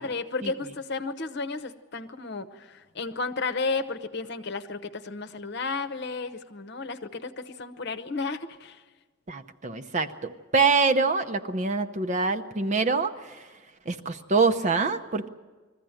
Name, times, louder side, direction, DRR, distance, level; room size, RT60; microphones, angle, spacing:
voice 1, 0.0-8.8, left 3 dB, 55° left, 10 dB, 0.9 m, -33 dB
voice 2, 9.3-13.4 13.9-15.3, right 4 dB, 35° right, 7 dB, 0.8 m, -25 dB
21.0 x 14.5 x 8.9 m, 1.4 s
head